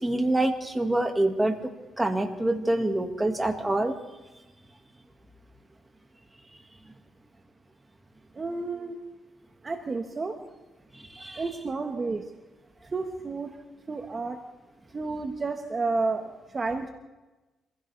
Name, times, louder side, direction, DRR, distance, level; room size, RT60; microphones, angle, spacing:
voice 1, 0.0-1.6 2.0-3.9 10.9-11.4, right 1 dB, 10° right, 4 dB, 1.9 m, -26 dB
voice 2, 8.3-9.0 9.6-10.4 11.4-12.2 12.9-13.5 13.9-14.4 14.9-16.9, right 3 dB, 30° right, 4 dB, 1.4 m, -31 dB
25.5 x 16.0 x 3.4 m, 1.1 s
cardioid pair, 90°, 0 cm